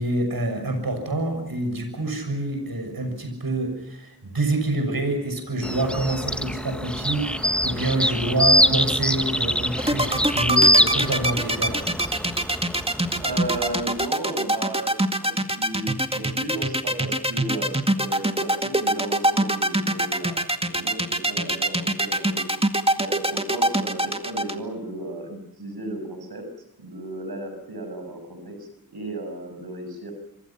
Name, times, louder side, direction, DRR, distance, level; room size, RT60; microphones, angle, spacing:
voice 1, 0.0-11.8, right 2 dB, 75° right, 7 dB, 6.8 m, -27 dB
sound 1, 5.6-14.0, equal, 5° left, 1.6 m, -24 dB
sound 2, 9.8-24.5, right 1 dB, 15° right, 2.1 m, -23 dB
voice 2, 13.2-14.9 15.2-22.5 22.9-26.4 26.8-30.1, right 1 dB, 90° right, 5 dB, 6.6 m, -34 dB
27.5 x 25.5 x 5.9 m, 0.80 s
wide cardioid pair, 55°, 36 cm